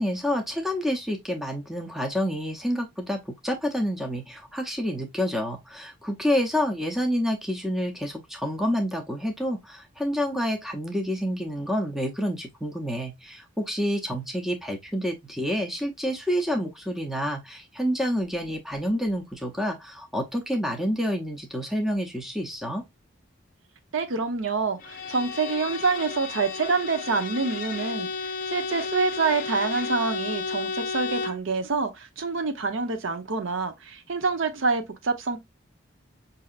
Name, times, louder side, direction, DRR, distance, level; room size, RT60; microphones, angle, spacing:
voice 1, 0.0-22.8, equal, ahead, 0.6 m, -28 dB
voice 2, 23.9-35.4, right 4 dB, 75° right, 0.7 m, -27 dB
Bowed string instrument, 24.8-31.5, left 4 dB, 45° left, 0.4 m, -33 dB
5.3 x 2.7 x 2.4 m
head